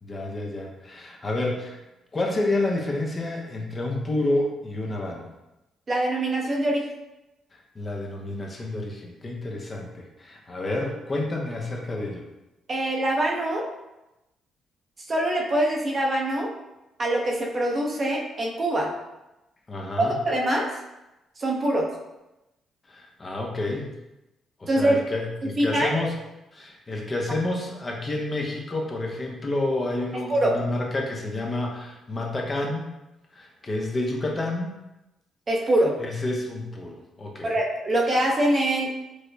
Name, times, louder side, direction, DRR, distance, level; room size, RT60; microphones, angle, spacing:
voice 1, 0.0-1.8 2.1-5.3 7.7-12.3 19.7-20.2 22.9-23.9 24.6-26.2 26.5-32.9 33.3-34.7 36.0-37.5, left 2 dB, 30° left, 0 dB, 0.6 m, -29 dB
voice 2, 5.9-6.9 12.7-13.7 15.1-16.5 17.0-18.9 20.2-20.7 21.4-21.8 24.7-25.0 25.6-25.9 30.3-30.5 35.5-36.0 37.4-38.9, right 1 dB, 35° right, -1 dB, 0.6 m, -23 dB
4.7 x 2.1 x 2.6 m, 0.96 s
cardioid pair, 90°, 0 cm